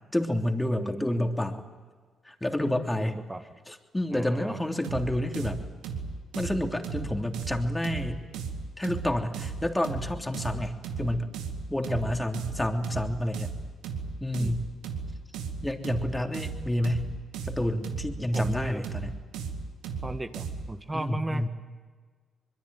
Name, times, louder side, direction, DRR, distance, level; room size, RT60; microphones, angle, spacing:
voice 1, 0.1-1.6 2.2-3.2 3.7-5.6 6.3-8.3 8.8-11.3 11.7-13.5 14.2-14.7 15.6-17.1 17.4-19.1 20.9-21.5, left 1 dB, 10° left, 4 dB, 3.2 m, -29 dB
voice 2, 0.8-1.3 3.0-3.6 4.1-4.6 10.5-10.6 11.9-12.2 14.4-14.6 18.2-18.8 20.0-21.5, right 2 dB, 20° right, 7 dB, 1.8 m, -36 dB
sound 1, 4.8-20.7, right 5 dB, 90° right, 2.1 m, -36 dB
25.0 x 22.0 x 9.3 m, 1.4 s
supercardioid pair, 55°, 0 cm